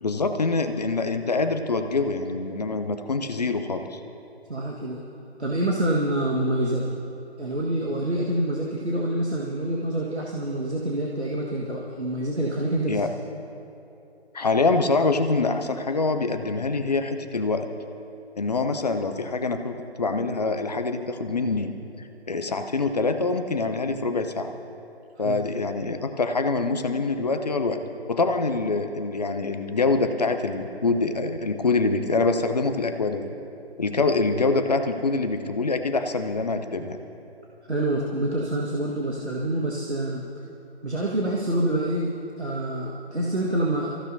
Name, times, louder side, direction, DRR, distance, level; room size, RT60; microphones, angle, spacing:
voice 1, 0.0-4.0 12.9-13.1 14.3-17.7 18.4-21.7 22.3-24.5 25.2-27.8 28.1-33.3 33.8-37.0, left 3 dB, 40° left, 7 dB, 0.8 m, -25 dB
voice 2, 4.5-5.0 5.4-6.9 7.4-13.0 25.2-25.4 37.7-40.2 40.8-43.9, right 1 dB, 90° right, -3 dB, 1.7 m, -26 dB
24.5 x 15.0 x 2.7 m, 2.9 s
figure-of-eight pair, 150°, 32 cm